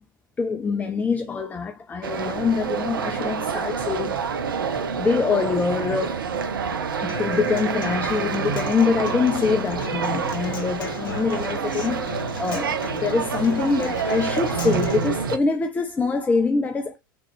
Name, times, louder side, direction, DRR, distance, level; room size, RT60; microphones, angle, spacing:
voice 1, 0.4-4.2 4.6-4.7 5.0-6.3 6.7-17.0, left 4 dB, 15° left, 0.4 m, -24 dB
sound 1, 2.0-15.4, right 6 dB, 75° right, 0.5 m, -27 dB
Human voice / Acoustic guitar, 7.1-15.1, left 4 dB, 65° left, 0.7 m, -36 dB
3.5 x 3.0 x 3.2 m
figure-of-eight pair, 80°, 12 cm